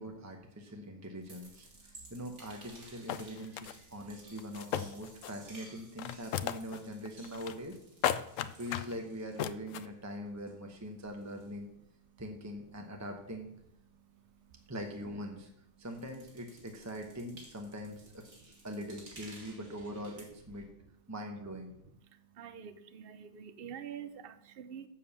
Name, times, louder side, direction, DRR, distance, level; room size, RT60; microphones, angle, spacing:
voice 1, 0.0-7.8 8.4-11.7 12.2-13.5 14.7-15.5 15.8-18.1 18.6-20.7 21.1-21.7, equal, 15° right, 3 dB, 0.6 m, -42 dB
sound 1, 1.2-10.1 10.4-15.4 15.7-20.6, right 2 dB, 40° right, 2.4 m, -57 dB
sound 2, 2.7-2.8 3.1-3.7 4.4-5.5 5.8-6.8 7.1-7.8 8.0-9.0 9.4-9.9, left 10 dB, 80° left, 0.7 m, -35 dB
voice 2, 22.4-24.9, right 8 dB, 60° right, 11 dB, 0.6 m, -46 dB
7.6 x 7.0 x 7.0 m, 0.77 s
omnidirectional pair, 1.9 m